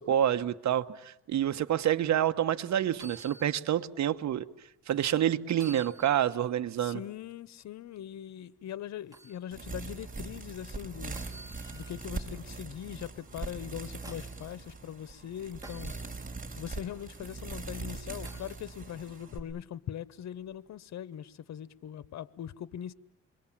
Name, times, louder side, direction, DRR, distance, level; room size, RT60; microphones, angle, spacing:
voice 1, 0.0-4.5 4.9-7.0, right 10 dB, 65° right, 1.3 m, -28 dB
sound 1, 2.9-3.6 4.0-4.1 5.5-6.5 9.1-9.4 11.1-12.1 13.5-14.5 15.6-16.0 18.2-18.6 20.4-20.5, right 1 dB, 10° right, 4.5 m, -50 dB
voice 2, 6.8-11.1 11.7-15.9 16.6-22.9, left 10 dB, 60° left, 1.0 m, -41 dB
sound 2, 9.5-19.4, right 3 dB, 25° right, 4.7 m, -41 dB
28.0 x 23.0 x 7.4 m
cardioid pair, 90°, 31 cm